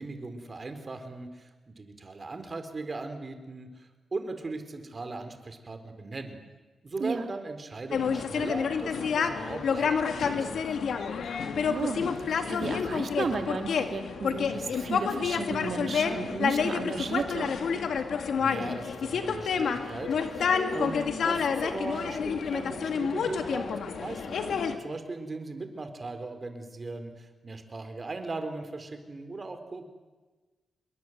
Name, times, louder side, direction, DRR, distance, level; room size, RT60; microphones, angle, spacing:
voice 1, 0.0-6.4 6.8-10.6 18.4-24.5 24.8-29.9, right 3 dB, 35° right, 7 dB, 4.1 m, -38 dB
sound 1, 7.9-24.7, left 6 dB, 75° left, 2.2 m, -29 dB
voice 2, 11.4-17.5, right 4 dB, 55° right, 5 dB, 3.2 m, -34 dB
27.0 x 22.0 x 8.0 m, 1.3 s
cardioid pair, 85°, 0 cm